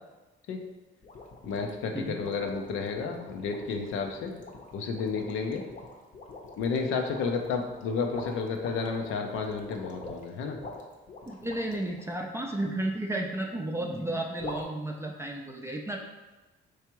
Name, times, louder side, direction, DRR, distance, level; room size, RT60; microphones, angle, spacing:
sound 1, 1.0-12.0 14.4-14.6, left 3 dB, 40° left, 0.7 m, -44 dB
voice 1, 1.4-4.3 4.7-5.6 6.6-10.6, left 5 dB, 90° left, 4 dB, 0.6 m, -31 dB
voice 2, 11.3-16.0, right 1 dB, 15° right, 1 dB, 0.4 m, -33 dB
4.7 x 3.4 x 3.0 m, 1.1 s
cardioid pair, 90°, 20 cm